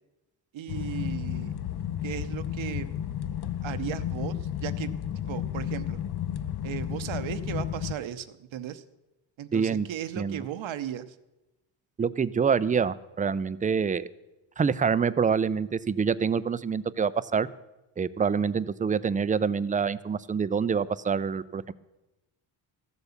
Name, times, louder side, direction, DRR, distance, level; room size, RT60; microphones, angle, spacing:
voice 1, 0.5-1.6 2.0-2.9 3.6-4.9 5.3-6.0 6.6-8.8 9.4-11.2, right 10 dB, 70° right, 11 dB, 0.9 m, -36 dB
sound 1, 0.7-7.9, left 10 dB, 50° left, 0.7 m, -32 dB
voice 2, 9.5-9.9 10.2-10.4 12.0-14.1 14.6-17.5 18.0-21.7, right 6 dB, 20° right, 17 dB, 0.3 m, -26 dB
14.0 x 8.2 x 7.1 m, 1.0 s
cardioid pair, 110°, 48 cm